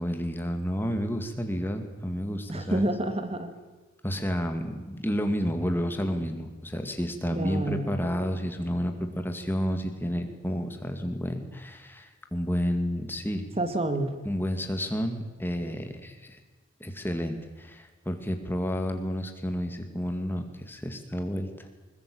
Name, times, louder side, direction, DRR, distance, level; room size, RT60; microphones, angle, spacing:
voice 1, 0.0-2.9 4.0-13.5 14.2-16.4 16.8-21.7, equal, 10° left, 6 dB, 2.3 m, -30 dB
voice 2, 2.5-3.5 7.3-8.0 13.6-14.2, right 1 dB, 30° right, 8 dB, 2.1 m, -29 dB
21.0 x 20.5 x 8.7 m, 1.2 s
head